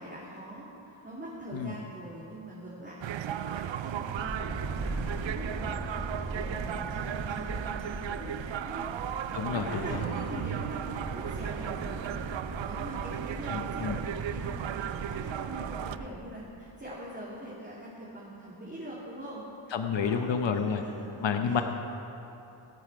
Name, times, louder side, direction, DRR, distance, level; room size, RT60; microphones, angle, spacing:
voice 1, 0.0-8.8 9.5-11.9 12.6-21.6, right 1 dB, 20° right, -8 dB, 2.8 m, -43 dB
sound 1, 3.0-16.0, right 10 dB, 65° right, 0.5 m, -36 dB
sound 2, 4.2-16.1, right 2 dB, 40° right, 1.7 m, -39 dB
voice 2, 9.3-9.7 13.5-14.0 19.7-20.8 21.2-21.6, left 6 dB, 60° left, 6 dB, 0.9 m, -29 dB
23.5 x 8.8 x 4.7 m, 3.0 s
wide cardioid pair, 85°, 50 cm